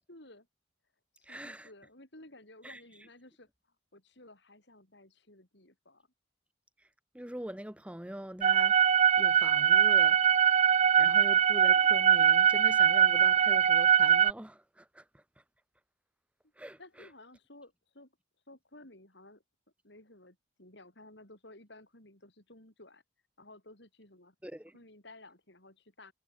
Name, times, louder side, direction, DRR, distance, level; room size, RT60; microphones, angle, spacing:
voice 1, 0.1-0.5 1.1-3.5 3.9-6.1 16.8-18.1 18.5-19.4 19.8-23.0 23.4-24.3 24.7-26.1, left 2 dB, 60° left, 6.1 m, -55 dB
voice 2, 1.2-1.7 2.6-2.8 6.8-6.9 7.1-8.9 9.2-10.2 11.0-15.2 16.6-17.1 24.4-24.7, equal, 5° right, 0.9 m, -43 dB
sound 1, 8.4-14.3, right 8 dB, 35° right, 0.4 m, -22 dB
head